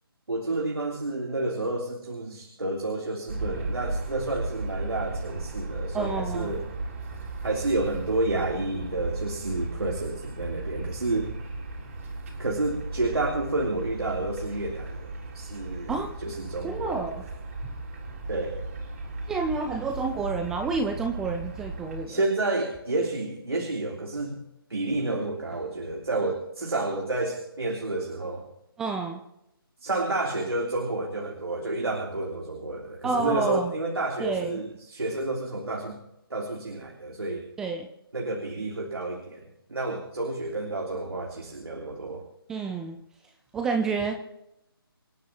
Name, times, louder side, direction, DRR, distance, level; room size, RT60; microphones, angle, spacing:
voice 1, 0.3-6.6 7.4-11.3 12.4-17.0 18.3-18.6 22.1-24.4 24.7-28.4 29.8-36.0 36.3-37.4 38.1-42.2, right 2 dB, 85° right, 1 dB, 3.3 m, -30 dB
sound 1, 3.3-22.1, right 2 dB, 35° right, 4.0 m, -36 dB
voice 2, 5.9-6.6 15.9-16.1 16.6-17.2 17.6-17.7 19.3-22.2 28.8-29.2 33.0-33.7 34.2-34.6 37.6-37.9 42.5-43.0 43.5-44.4, right 4 dB, 5° right, 5 dB, 0.5 m, -29 dB
27.5 x 10.5 x 3.0 m, 0.85 s
figure-of-eight pair, 160°, 13 cm